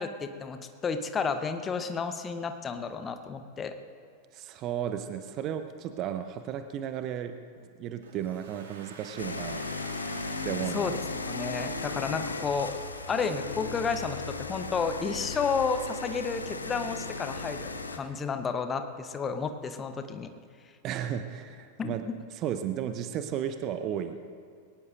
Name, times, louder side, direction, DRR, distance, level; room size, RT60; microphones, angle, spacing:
voice 1, 0.0-3.7 10.7-11.0 11.3-12.7 13.1-20.3 21.8-22.0, left 5 dB, 20° left, 8 dB, 0.9 m, -31 dB
voice 2, 4.3-9.6 10.4-11.0 20.8-22.0 22.3-24.2, right 9 dB, 35° right, 9 dB, 0.7 m, -34 dB
Domestic sounds home sounds, 8.0-12.8, right 4 dB, 65° right, 2.1 m, -49 dB
sound 1, 9.2-18.0, left 3 dB, 75° left, 0.9 m, -36 dB
21.5 x 18.5 x 2.6 m, 2.2 s
figure-of-eight pair, 90°, 0 cm